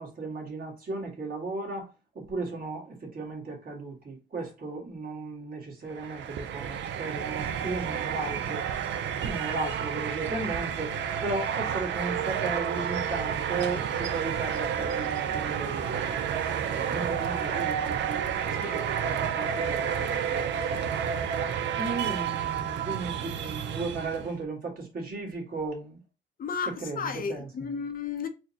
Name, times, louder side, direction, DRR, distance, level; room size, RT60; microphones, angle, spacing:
voice 1, 0.0-8.6 9.2-21.2 21.8-26.0 26.8-27.5, right 3 dB, 45° right, 1.6 m, -36 dB
sound 1, 5.9-24.4, right 8 dB, 65° right, 0.5 m, -30 dB
voice 2, 26.4-28.3, left 6 dB, 45° left, 0.6 m, -33 dB
4.2 x 2.1 x 2.7 m
cardioid pair, 90°, 20 cm